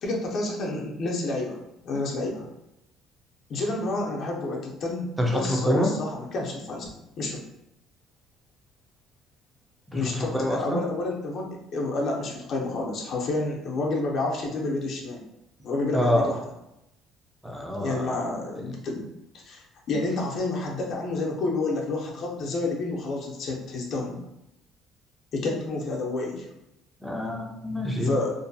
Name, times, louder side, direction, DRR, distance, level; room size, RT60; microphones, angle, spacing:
voice 1, 0.0-1.6 1.8-2.5 3.5-7.4 9.9-15.2 15.6-16.4 17.8-19.1 19.5-24.2 25.3-26.5 28.0-28.3, left 2 dB, 50° left, -1 dB, 0.6 m, -29 dB
voice 2, 5.2-5.9 9.9-10.8 15.9-16.3 17.4-18.1 27.0-28.1, equal, ahead, -1 dB, 0.4 m, -26 dB
2.5 x 2.2 x 2.6 m, 0.87 s
cardioid pair, 145°, 0 cm